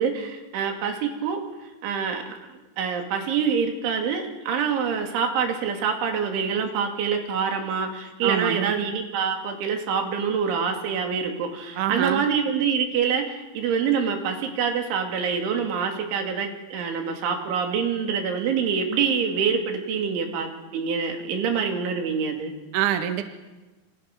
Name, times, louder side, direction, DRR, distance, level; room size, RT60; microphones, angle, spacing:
voice 1, 0.0-1.4 1.8-2.4 2.8-22.5, right 6 dB, 85° right, 4 dB, 5.1 m, -26 dB
voice 2, 8.2-8.7 11.8-12.3 22.7-23.2, right 10 dB, 55° right, 7 dB, 2.5 m, -25 dB
28.0 x 26.0 x 6.2 m, 1.2 s
omnidirectional pair, 5.3 m